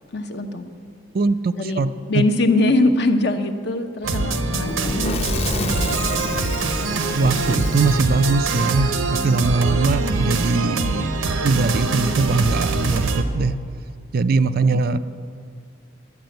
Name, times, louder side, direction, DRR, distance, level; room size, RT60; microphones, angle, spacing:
voice 1, 0.1-0.7 1.6-1.8 2.1-6.4 9.3-9.8 14.6-15.0, left 2 dB, 55° left, 7 dB, 0.9 m, -23 dB
voice 2, 1.1-2.2 7.1-11.1 11.4-13.5 14.1-15.0, right 3 dB, 45° right, 12 dB, 0.4 m, -21 dB
sound 1, 4.0-13.2, right 3 dB, 90° right, 1.0 m, -24 dB
Fire / Explosion, 4.6-9.5, left 2 dB, 30° left, 0.7 m, -29 dB
10.5 x 10.0 x 7.8 m, 2.3 s
head